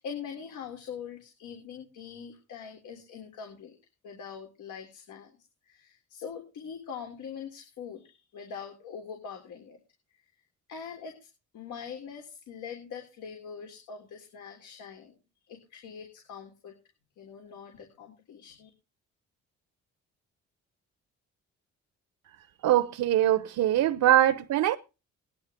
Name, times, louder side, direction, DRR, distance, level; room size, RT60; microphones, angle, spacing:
voice 1, 0.0-3.8 4.0-5.4 5.7-9.8 10.7-11.3 11.5-15.2 15.5-16.7 17.2-18.7, left 7 dB, 80° left, 3.5 m, -43 dB
voice 2, 22.6-24.8, right 12 dB, 75° right, 1.0 m, -23 dB
18.0 x 11.5 x 3.8 m
cardioid pair, 90°, 30 cm